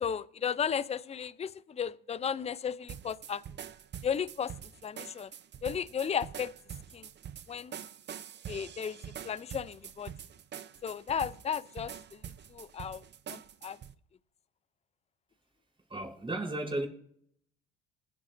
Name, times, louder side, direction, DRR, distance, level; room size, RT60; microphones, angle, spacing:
voice 1, 0.0-3.4 4.0-4.5 4.8-5.3 5.6-6.5 6.9-7.1 7.5-7.7 8.5-9.0 9.2-10.1 10.8-11.9 12.5-13.0 13.3-13.8, left 7 dB, 20° left, 17 dB, 0.6 m, -34 dB
sound 1, 2.9-13.9, right 9 dB, 35° right, 0.8 m, -45 dB
voice 2, 15.9-16.9, right 2 dB, 15° right, 0 dB, 4.3 m, -34 dB
20.0 x 8.6 x 2.7 m, 0.66 s
supercardioid pair, 80°, 30 cm